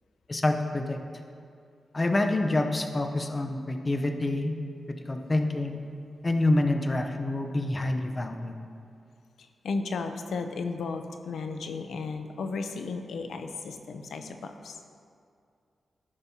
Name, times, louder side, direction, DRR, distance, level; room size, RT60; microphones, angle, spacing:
voice 1, 0.3-1.0 1.9-4.5 5.1-5.8 6.2-8.6, left 2 dB, 30° left, 5 dB, 0.7 m, -27 dB
voice 2, 9.4-14.8, left 4 dB, 90° left, 7 dB, 0.6 m, -34 dB
14.5 x 5.3 x 2.8 m, 2.4 s
cardioid pair, 80°, 0 cm